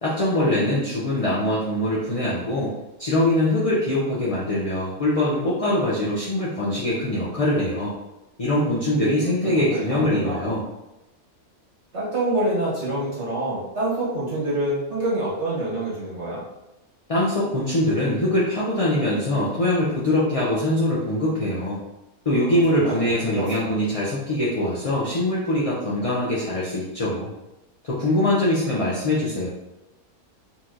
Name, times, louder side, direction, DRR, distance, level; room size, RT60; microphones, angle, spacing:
voice 1, 0.0-2.7 3.0-7.9 8.4-10.6 17.1-21.8 22.2-27.3 27.8-29.5, left 1 dB, 30° left, -6 dB, 0.7 m, -23 dB
voice 2, 9.2-10.5 11.9-16.4 22.5-23.7, right 1 dB, 50° right, -7 dB, 2.0 m, -27 dB
4.1 x 3.0 x 3.8 m, 0.95 s
omnidirectional pair, 1.5 m